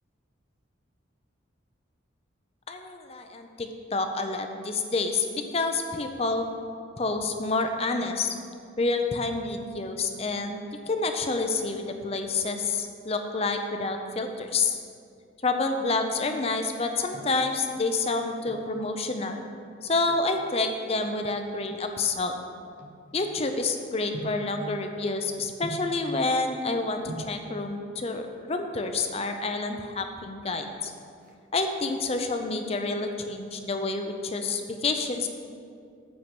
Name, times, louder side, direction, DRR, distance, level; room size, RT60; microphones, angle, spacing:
voice 1, 2.7-6.5 7.0-8.3 8.8-10.6 10.9-14.8 15.4-19.4 19.8-22.3 23.1-30.9 31.5-35.3, left 3 dB, 30° left, 5 dB, 0.6 m, -28 dB
sound 1, 16.7-17.5 18.3-18.8 20.0-20.4 21.1-23.5 24.1-24.5 25.6-26.0 26.8-26.9 27.1-27.4 28.6-29.1 29.4-29.5 29.7-29.9 30.2-30.6 30.9-32.0 32.4-32.8 33.2-34.4 34.6-34.7, right 2 dB, 40° right, 0.9 m, -43 dB
9.4 x 4.6 x 7.6 m, 2.3 s
head